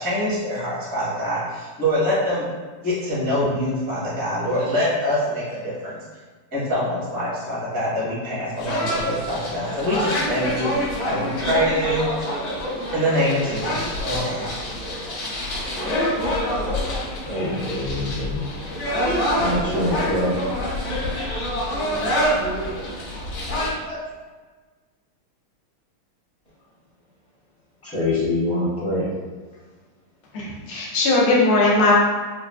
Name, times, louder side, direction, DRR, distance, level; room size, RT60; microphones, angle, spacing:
voice 1, 0.0-2.5 2.8-6.0 6.5-12.3 12.9-14.5, equal, 25° right, -9 dB, 0.5 m, -24 dB
sound 1, 8.6-23.7, equal, 55° left, 2.0 m, -26 dB
voice 2, 17.2-18.4 19.3-20.3 23.1-23.2 23.6-24.1 27.8-29.0, left 1 dB, 40° left, -15 dB, 1.7 m, -25 dB
voice 3, 30.3-32.0, left 2 dB, 75° left, -3 dB, 1.5 m, -18 dB
4.5 x 2.4 x 2.3 m, 1.4 s
omnidirectional pair, 2.4 m